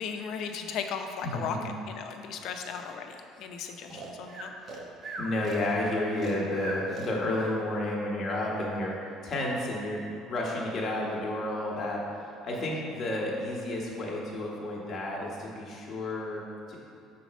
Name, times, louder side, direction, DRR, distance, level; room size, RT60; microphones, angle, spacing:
voice 1, 0.0-4.5 12.5-12.8, left 6 dB, 60° left, 5 dB, 0.6 m, -37 dB
voice 2, 1.2-1.6 5.2-9.0 9.2-16.8, left 1 dB, 35° left, -3 dB, 1.3 m, -31 dB
Breathing, 3.9-7.6, right 2 dB, 40° right, 0.8 m, -39 dB
5.7 x 4.1 x 6.2 m, 2.6 s
cardioid pair, 140°, 0 cm